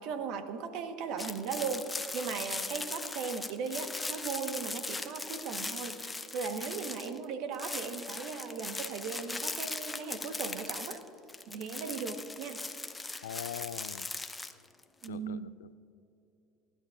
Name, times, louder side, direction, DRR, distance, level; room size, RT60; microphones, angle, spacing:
voice 1, 0.0-6.0 6.3-11.0 11.5-12.7 15.0-15.5, right 5 dB, 65° right, 7 dB, 1.3 m, -37 dB
sound 1, 1.2-7.2 7.5-15.1, left 3 dB, 15° left, 0.8 m, -39 dB
voice 2, 13.2-14.1 15.1-15.7, left 10 dB, 90° left, 17 dB, 0.3 m, -42 dB
29.0 x 11.5 x 2.6 m, 2.9 s
hypercardioid pair, 85°, 0 cm